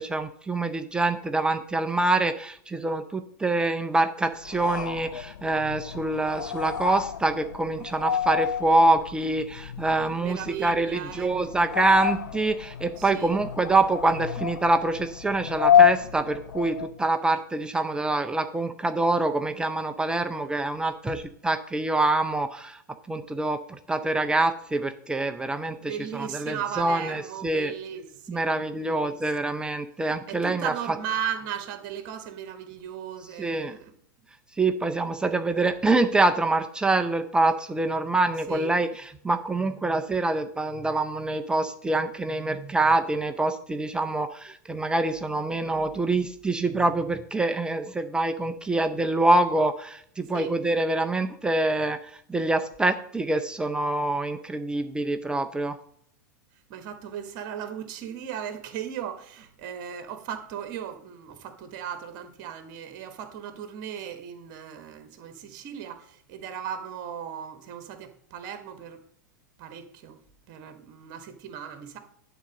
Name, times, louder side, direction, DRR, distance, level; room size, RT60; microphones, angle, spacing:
voice 1, 0.0-22.8 23.1-27.7 28.3-30.7 33.4-33.8 34.6-55.8, right 2 dB, 10° right, 0.5 m, -25 dB
sound 1, 4.4-17.0, left 9 dB, 75° left, 0.4 m, -28 dB
voice 2, 10.1-11.4 13.0-13.4 25.8-29.2 30.3-33.9 38.5-38.7 50.3-50.5 56.7-69.0 69.6-70.2 70.5-72.0, right 9 dB, 45° right, 1.2 m, -37 dB
10.0 x 3.9 x 6.3 m
figure-of-eight pair, 100°, 10 cm